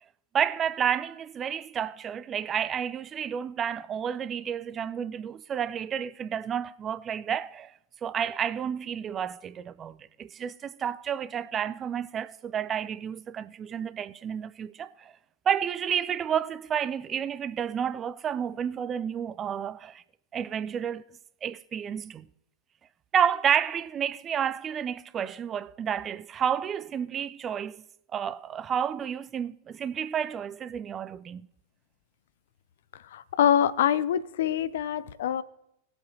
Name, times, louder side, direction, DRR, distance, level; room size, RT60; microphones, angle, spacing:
voice 1, 0.3-7.7 8.0-15.1 15.5-20.0 20.3-21.0 21.4-22.3 23.1-27.8 28.1-31.5, right 8 dB, 25° right, 0.4 m, -30 dB
voice 2, 33.1-35.4, left 9 dB, 60° left, 0.4 m, -25 dB
20.0 x 7.8 x 2.8 m
figure-of-eight pair, 90°, 0 cm